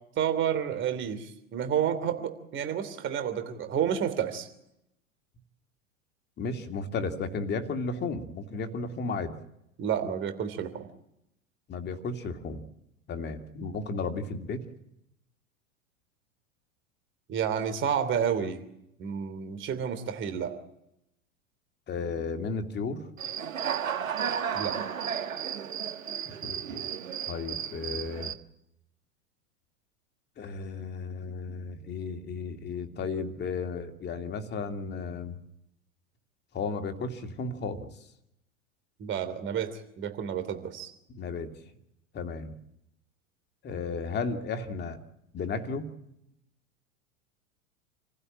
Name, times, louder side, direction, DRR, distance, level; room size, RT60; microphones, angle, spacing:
voice 1, 0.1-4.5 9.8-10.9 17.3-18.6 19.0-20.6 24.5-24.8 39.0-40.9, right 8 dB, 30° right, 10 dB, 3.1 m, -30 dB
voice 2, 6.4-9.3 11.7-12.6 13.1-14.6 21.9-23.0 26.3-26.9 27.3-28.3 30.4-35.4 36.5-37.9 41.1-41.5 42.1-42.5 43.6-45.0 45.3-45.9, left 4 dB, 25° left, 6 dB, 2.5 m, -34 dB
Human voice / Cricket, 23.2-28.3, right 8 dB, 70° right, 1.6 m, -33 dB
28.0 x 15.5 x 8.9 m, 0.80 s
figure-of-eight pair, 90°, 41 cm